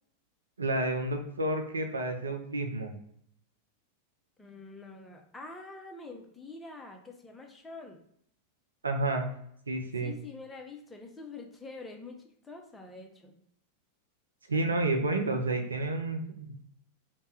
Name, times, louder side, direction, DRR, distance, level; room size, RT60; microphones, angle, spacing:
voice 1, 0.6-2.9 8.8-9.3 9.7-10.1 14.5-16.6, right 2 dB, 75° right, 4 dB, 0.4 m, -30 dB
voice 2, 4.4-8.0 10.0-12.2 12.4-13.4, left 3 dB, 10° left, 2 dB, 0.6 m, -46 dB
2.8 x 2.1 x 3.3 m, 0.68 s
figure-of-eight pair, 90°, 0 cm